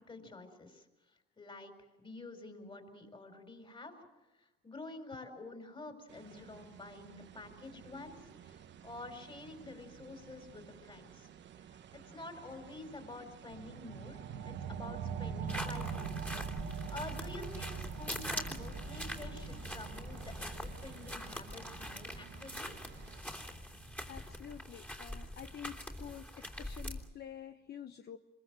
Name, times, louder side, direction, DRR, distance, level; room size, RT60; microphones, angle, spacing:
voice 1, 0.1-0.9 1.4-1.7 2.0-3.9 4.4-11.3 11.6-16.1 16.6-22.7, left 2 dB, 25° left, 6 dB, 4.8 m, -49 dB
sound 1, 6.1-23.2, right 9 dB, 60° right, 1.1 m, -55 dB
sound 2, 13.5-24.6, right 6 dB, 85° right, 1.8 m, -43 dB
sound 3, 15.5-27.1, equal, 10° left, 3.2 m, -44 dB
voice 2, 24.1-28.2, left 9 dB, 55° left, 8 dB, 1.0 m, -48 dB
26.5 x 22.0 x 7.7 m, 1.1 s
cardioid pair, 80°, 20 cm